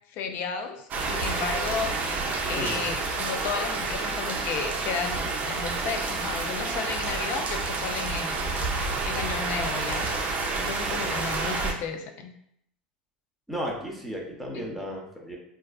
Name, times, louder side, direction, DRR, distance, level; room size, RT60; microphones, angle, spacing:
voice 1, 0.1-1.9 2.5-8.5 9.1-10.0 10.5-12.3 14.5-14.9, left 6 dB, 50° left, 5 dB, 0.5 m, -33 dB
sound 1, 0.9-11.7, right 3 dB, 35° right, 0.6 m, -29 dB
voice 2, 2.5-2.9 13.5-15.4, equal, ahead, -1 dB, 0.8 m, -34 dB
4.1 x 2.4 x 2.3 m, 0.72 s
hypercardioid pair, 85°, 5 cm